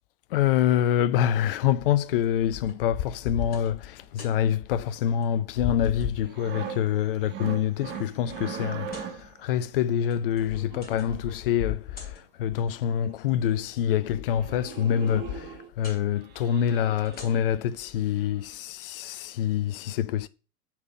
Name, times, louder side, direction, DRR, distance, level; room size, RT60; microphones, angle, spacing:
voice 1, 0.3-20.3, left 10 dB, 40° left, 0.4 m, -26 dB
sound 1, 2.2-2.8 3.2-3.7 4.0-4.4 5.1-5.3 5.5-6.1 6.7-7.3 7.8-7.9 8.8-9.1 9.9-11.3 11.5-12.2 13.1-13.8 15.8-16.0 16.9-17.7, left 2 dB, 20° left, 2.4 m, -48 dB
sound 2, 6.2-9.4 10.4-11.6 12.7-12.8 13.1-13.2 13.5-13.7 14.0-14.2 14.4-15.7 16.2-17.8 18.2-18.4, right 7 dB, 25° right, 0.8 m, -40 dB
4.6 x 4.4 x 5.9 m
figure-of-eight pair, 105°, 46 cm